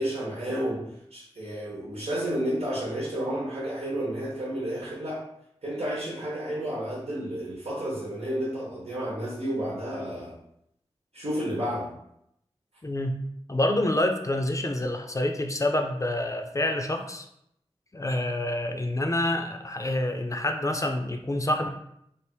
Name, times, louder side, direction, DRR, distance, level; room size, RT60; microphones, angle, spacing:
voice 1, 0.0-5.2 5.6-10.3 11.1-11.9, equal, 75° right, -6 dB, 1.1 m, -31 dB
voice 2, 12.8-13.2 13.5-17.3 17.9-21.7, left 1 dB, 30° left, 5 dB, 0.5 m, -27 dB
3.4 x 2.5 x 4.4 m, 0.76 s
wide cardioid pair, 65°, 11 cm